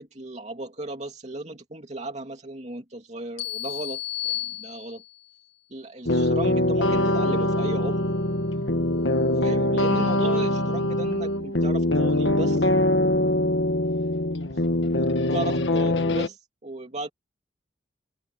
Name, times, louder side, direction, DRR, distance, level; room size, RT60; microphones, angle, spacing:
voice 1, 0.0-5.0 5.7-8.1 9.4-12.7 14.5-14.6 15.3-17.1, right 2 dB, 40° right, 2.7 m, -35 dB
sound 1, 3.4-5.3, left 13 dB, 65° left, 2.7 m, -33 dB
sound 2, 6.1-16.3, left 1 dB, 85° left, 1.7 m, -23 dB
open air
head